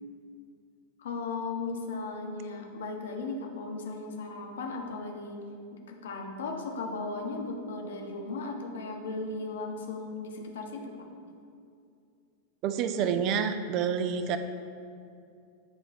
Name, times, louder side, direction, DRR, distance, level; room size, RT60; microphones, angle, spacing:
voice 1, 1.0-5.4 5.9-11.1, left 3 dB, 60° left, 2 dB, 0.8 m, -36 dB
voice 2, 12.6-14.4, right 7 dB, 40° right, 9 dB, 0.3 m, -28 dB
8.9 x 3.1 x 3.9 m, 2.4 s
figure-of-eight pair, 90°, 0 cm